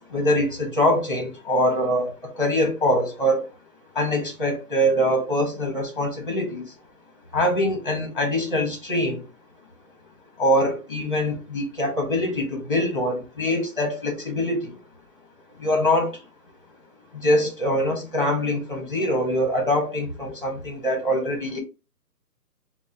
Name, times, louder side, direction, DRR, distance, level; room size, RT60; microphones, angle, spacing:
voice 1, 0.1-3.5 3.9-6.7 7.3-9.2 10.4-14.8 15.6-16.2 17.1-21.6, equal, 30° left, 0.9 m, -23 dB
4.2 x 2.0 x 2.5 m
hypercardioid pair, 180°, 49 cm